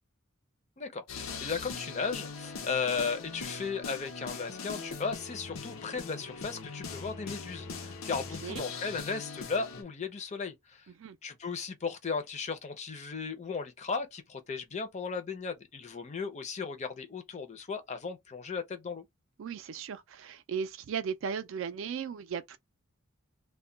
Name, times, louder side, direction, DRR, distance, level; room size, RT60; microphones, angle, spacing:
voice 1, 0.8-10.9 11.2-19.0, left 5 dB, 35° left, 0.5 m, -36 dB
sound 1, 1.1-9.8, left 4 dB, 80° left, 0.6 m, -41 dB
voice 2, 19.4-22.6, right 6 dB, 65° right, 0.4 m, -36 dB
2.2 x 2.1 x 3.7 m
head